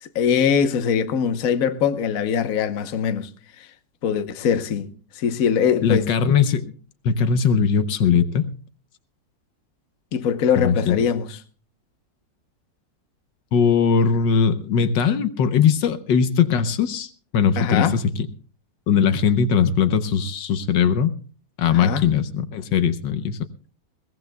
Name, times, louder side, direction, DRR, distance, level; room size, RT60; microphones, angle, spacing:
voice 1, 0.0-3.3 4.0-4.9 5.1-6.1 10.1-11.4 17.6-18.0 21.7-22.1, left 7 dB, 55° left, 1.3 m, -22 dB
voice 2, 5.8-6.7 7.0-8.5 10.6-11.0 13.5-18.3 18.9-21.1 21.6-23.4, left 6 dB, 80° left, 1.6 m, -20 dB
21.5 x 18.0 x 2.2 m
omnidirectional pair, 2.0 m